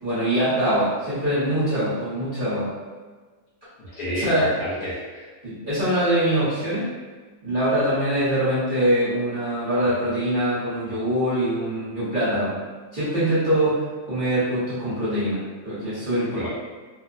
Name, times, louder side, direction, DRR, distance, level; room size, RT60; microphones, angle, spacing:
voice 1, 0.0-2.7 4.1-4.5 5.4-6.9 7.4-12.6 12.9-13.8 14.1-16.5, right 1 dB, 35° right, -13 dB, 1.0 m, -23 dB
voice 2, 3.8-5.3 16.3-16.5, equal, 65° left, -9 dB, 1.3 m, -30 dB
2.9 x 2.1 x 2.4 m, 1.4 s
omnidirectional pair, 1.7 m